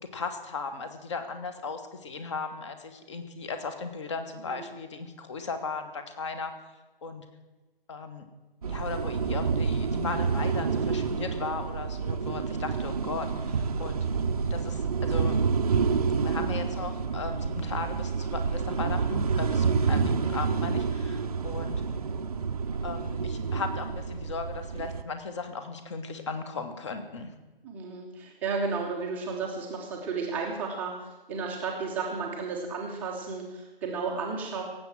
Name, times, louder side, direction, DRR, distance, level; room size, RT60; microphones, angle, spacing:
voice 1, 0.0-6.5 7.0-7.2 7.9-8.3 8.7-14.0 14.5-15.4 16.2-21.8 22.8-27.3, left 4 dB, 30° left, 8 dB, 1.4 m, -37 dB
sound 1, 8.6-25.0, right 5 dB, 40° right, 0.7 m, -28 dB
voice 2, 27.6-34.6, right 4 dB, 5° right, -2 dB, 0.8 m, -33 dB
17.5 x 7.8 x 7.5 m, 1.2 s
figure-of-eight pair, 145°, 29 cm